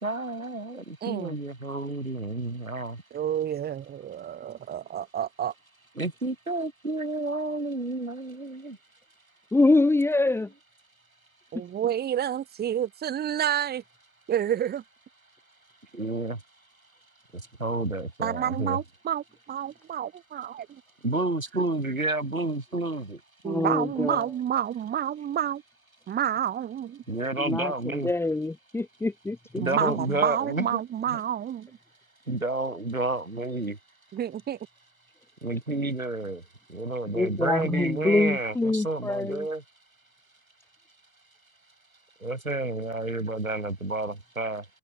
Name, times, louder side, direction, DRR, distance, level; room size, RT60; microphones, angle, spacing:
voice 1, 0.0-3.0 6.0-8.8 15.9-16.4 17.3-18.8 21.0-23.2 27.1-28.1 29.5-30.8 31.1-31.2 32.3-33.8 35.4-36.4 36.7-39.6 42.2-44.6, right 2 dB, 90° right, 1.7 m, -30 dB
voice 2, 1.0-1.3 3.1-5.5 11.5-13.8 14.3-14.8 18.2-20.8 23.4-25.6 26.1-27.0 29.6-31.8 34.1-34.6, right 10 dB, 25° right, 3.4 m, -29 dB
voice 3, 9.5-10.5 23.4-24.2 27.4-29.9 37.1-39.5, left 2 dB, 5° left, 1.6 m, -25 dB
figure-of-eight pair, 95°, 41 cm